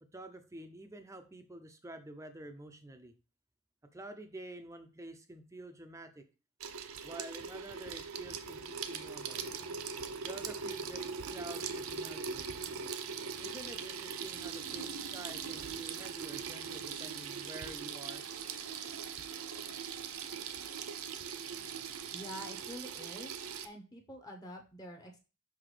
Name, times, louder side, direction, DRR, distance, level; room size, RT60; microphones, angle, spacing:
voice 1, 0.0-3.1 3.8-6.3 7.0-9.4 10.2-12.5 13.4-18.3, right 1 dB, 15° right, 8 dB, 0.5 m, -48 dB
Water tap faucet / Sink (filling or washing), 6.6-23.7, right 6 dB, 70° right, 0.6 m, -41 dB
sound 1, 8.9-22.5, left 3 dB, 85° left, 1.0 m, -60 dB
voice 2, 22.1-23.4 23.6-25.2, equal, 15° left, 2 dB, 0.9 m, -47 dB
5.8 x 5.6 x 3.3 m, 0.32 s
head